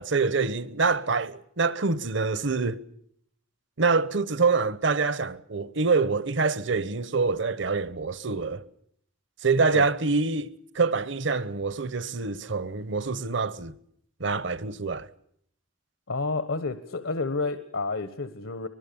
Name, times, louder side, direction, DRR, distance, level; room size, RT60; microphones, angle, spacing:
voice 1, 0.0-2.8 3.8-8.6 9.4-13.7 14.2-15.1, right 4 dB, 60° right, 1.0 m, -26 dB
voice 2, 16.1-18.7, left 3 dB, 80° left, 1.4 m, -30 dB
24.0 x 21.0 x 7.0 m
head